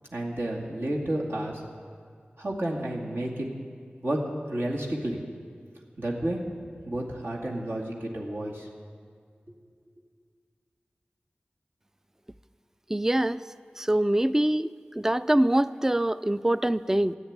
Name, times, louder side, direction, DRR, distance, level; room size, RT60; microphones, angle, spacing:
voice 1, 0.1-1.6 2.4-3.5 4.0-5.2 6.0-6.4 6.9-8.7, right 1 dB, 65° right, -3 dB, 2.3 m, -31 dB
voice 2, 12.9-13.4 13.8-17.2, right 1 dB, 10° right, 15 dB, 0.4 m, -24 dB
13.5 x 9.7 x 8.8 m, 2.1 s
wide cardioid pair, 45°, 4 cm